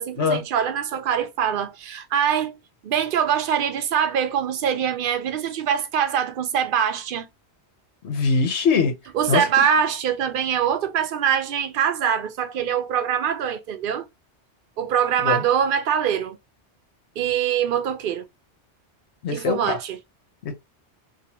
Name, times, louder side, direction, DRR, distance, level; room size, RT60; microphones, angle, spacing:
voice 1, 0.0-2.6 2.8-7.3 9.1-14.0 14.8-16.4 17.2-18.2 19.3-20.0, right 8 dB, 60° right, 0.7 m, -23 dB
voice 2, 8.0-8.9 9.3-9.4 15.2-15.4 19.2-19.8 20.4-20.5, left 5 dB, 75° left, 1.1 m, -22 dB
2.8 x 2.6 x 2.9 m
omnidirectional pair, 1.2 m